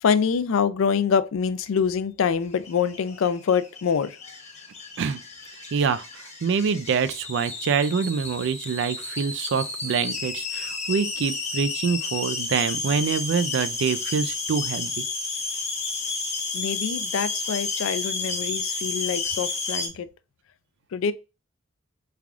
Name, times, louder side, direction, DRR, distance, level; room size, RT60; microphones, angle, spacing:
voice 1, 0.0-4.3 16.5-20.1 20.9-21.1, left 6 dB, 70° left, 0.4 m, -25 dB
sound 1, 2.5-19.9, left 3 dB, 35° left, 0.8 m, -31 dB
voice 2, 5.7-15.0, right 6 dB, 60° right, 0.3 m, -26 dB
3.3 x 2.4 x 3.5 m
head